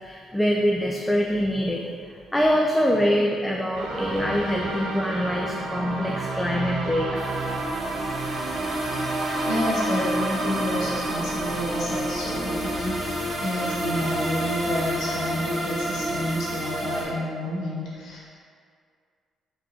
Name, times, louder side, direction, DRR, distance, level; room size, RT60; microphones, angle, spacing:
voice 1, 0.0-7.3, equal, 10° left, -1 dB, 0.3 m, -24 dB
sound 1, 3.7-13.0, right 3 dB, 85° right, 0.4 m, -32 dB
sound 2, 7.2-17.0, equal, 25° right, 1.1 m, -29 dB
voice 2, 9.4-18.3, left 1 dB, 85° left, -6 dB, 1.2 m, -30 dB
4.0 x 3.6 x 2.8 m, 2.1 s
cardioid pair, 90°, 0 cm